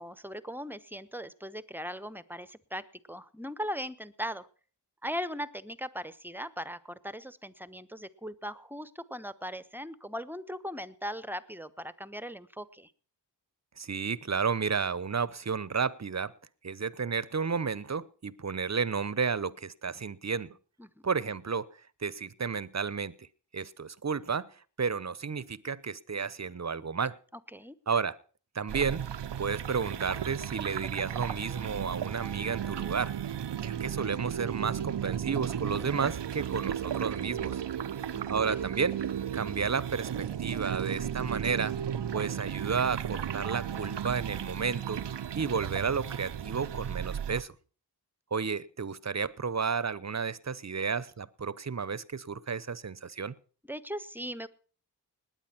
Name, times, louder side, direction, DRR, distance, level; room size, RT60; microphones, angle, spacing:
voice 1, 0.0-4.5 5.0-12.9 20.8-21.1 27.5-27.7 38.1-38.3 53.7-54.5, equal, 5° right, 16 dB, 1.1 m, -39 dB
voice 2, 13.8-16.3 16.6-20.6 21.0-21.7 22.0-23.3 23.5-24.5 24.8-27.2 27.9-28.2 28.5-29.0 29.4-33.1 33.6-37.6 38.3-39.0 39.3-41.7 42.1-45.0 45.3-47.5 48.3-53.3, right 5 dB, 40° right, 19 dB, 0.9 m, -32 dB
sound 1, 28.7-47.4, right 9 dB, 75° right, 0.8 m, -35 dB
19.5 x 9.1 x 5.9 m, 0.41 s
cardioid pair, 45°, 43 cm